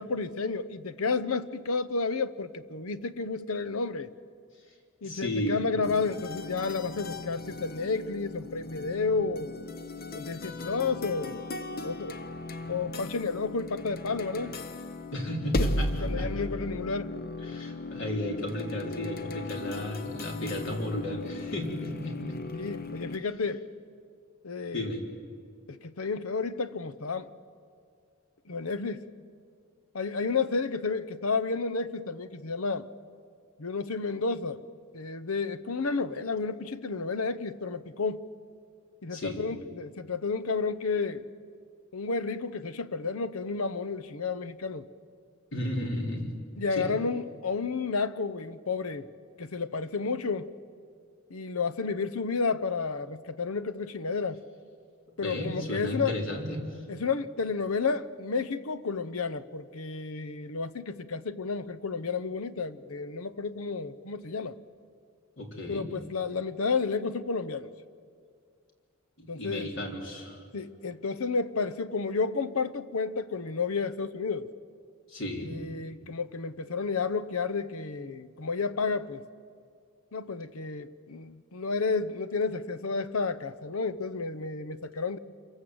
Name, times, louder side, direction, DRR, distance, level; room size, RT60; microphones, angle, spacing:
voice 1, 0.0-4.1 5.0-9.6 10.1-11.4 11.8-12.2 12.7-14.6 15.6-15.7 16.0-17.2 22.5-23.7 24.4-24.9 25.7-27.3 28.5-29.1 29.9-32.9 33.6-34.6 34.9-38.3 39.0-41.2 41.9-44.9 46.6-49.1 49.4-50.5 51.3-54.4 55.2-56.1 56.9-64.6 65.7-67.7 69.3-69.7 70.5-74.5 75.5-79.2 80.1-85.2, left 4 dB, 80° left, 0.9 m, -31 dB
voice 2, 5.0-5.7 15.1-16.5 17.4-22.4 24.7-25.0 39.1-39.4 45.5-46.4 46.7-46.9 55.2-56.8 65.4-65.9 69.2-70.4 75.1-75.6, left 1 dB, 60° left, 3.7 m, -34 dB
sound 1, 5.8-23.2, left 2 dB, 45° left, 0.9 m, -37 dB
28.0 x 24.0 x 7.9 m
head